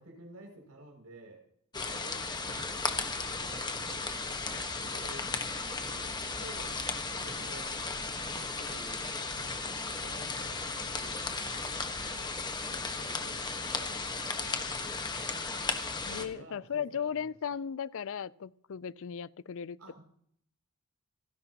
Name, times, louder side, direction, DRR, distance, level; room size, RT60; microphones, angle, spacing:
voice 1, 0.0-1.4 1.8-4.2 4.7-6.8 7.1-9.6 10.0-15.7 16.1-17.6 19.8-20.0, right 1 dB, 90° right, 6.3 m, -52 dB
sound 1, 1.7-16.2, left 3 dB, 20° left, 1.3 m, -35 dB
sound 2, 2.5-12.2, right 2 dB, 50° right, 1.3 m, -53 dB
voice 2, 16.0-19.8, left 7 dB, 60° left, 0.4 m, -36 dB
27.5 x 10.5 x 2.9 m
head